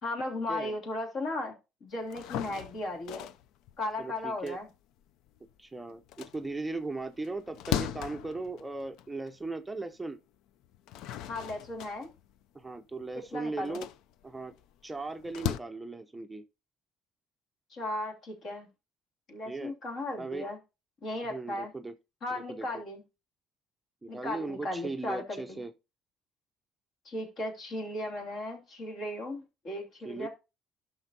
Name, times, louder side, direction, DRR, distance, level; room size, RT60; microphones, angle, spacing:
voice 1, 0.0-1.5 1.8-3.3 3.8-4.7 11.3-12.1 13.1-13.8 17.7-18.7 19.3-20.6 21.0-21.7 22.2-23.0 24.1-25.6 27.0-30.3, left 2 dB, 50° left, 2.7 m, -36 dB
sound 1, 2.0-5.6 6.0-9.5 9.9-10.0 10.6-15.6, left 12 dB, 75° left, 0.4 m, -38 dB
voice 2, 4.0-4.6 5.6-10.2 12.5-13.9 14.2-14.5 14.8-16.4 19.5-19.7 20.2-20.5 21.3-21.9 22.5-22.7 24.0-25.7 30.0-30.3, right 3 dB, 10° right, 0.6 m, -38 dB
12.0 x 5.8 x 2.8 m
cardioid pair, 115°, 0 cm